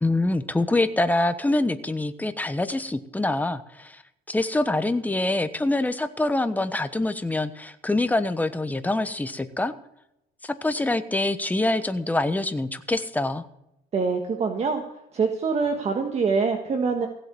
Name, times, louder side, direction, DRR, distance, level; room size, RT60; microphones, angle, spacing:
voice 1, 0.0-4.0 4.3-9.7 10.4-13.5, left 2 dB, 10° left, 10 dB, 1.0 m, -25 dB
voice 2, 13.9-14.8 15.1-17.1, right 5 dB, 40° right, 4 dB, 1.6 m, -24 dB
16.0 x 7.8 x 6.9 m, 0.83 s
cardioid pair, 110°, 17 cm